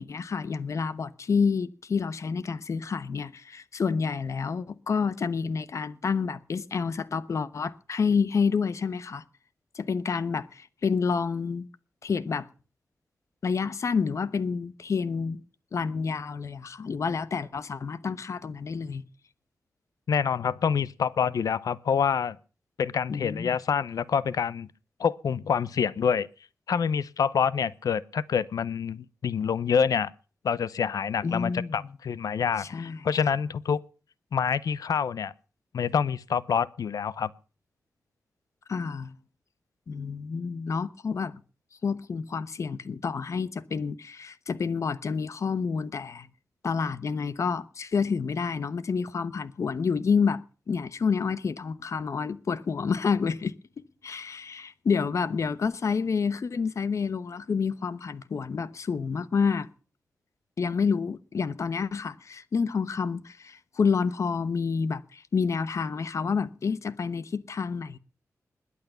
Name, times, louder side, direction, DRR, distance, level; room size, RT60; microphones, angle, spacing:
voice 1, 0.0-9.2 9.7-11.7 12.0-12.5 13.4-15.4 15.7-19.0 23.1-23.6 31.2-31.9 32.6-33.1 38.7-39.2 39.9-41.4 41.8-46.3 46.6-53.6 54.0-59.7 60.6-68.0, left 5 dB, 55° left, 1.0 m, -29 dB
voice 2, 20.1-22.4 22.8-24.7 25.0-26.3 26.7-30.1 30.4-33.8 34.3-35.3 35.7-37.3, left 7 dB, 80° left, 0.7 m, -27 dB
21.0 x 8.5 x 6.8 m
wide cardioid pair, 135°, 6 cm